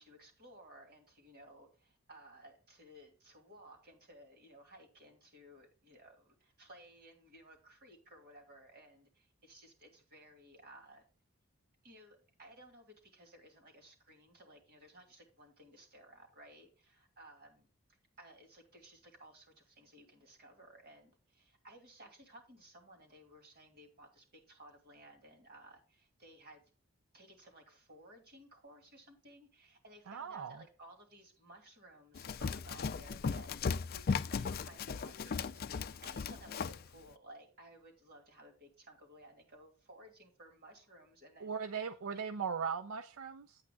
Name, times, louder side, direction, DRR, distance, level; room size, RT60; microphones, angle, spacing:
voice 1, 0.0-11.0 11.8-17.7 18.2-26.6 27.1-42.2, right 1 dB, 50° right, 2.7 m, -58 dB
voice 2, 30.1-30.5 41.4-43.6, right 6 dB, 85° right, 0.5 m, -39 dB
Run, 32.2-36.9, left 5 dB, 45° left, 0.4 m, -37 dB
8.9 x 8.5 x 2.3 m
head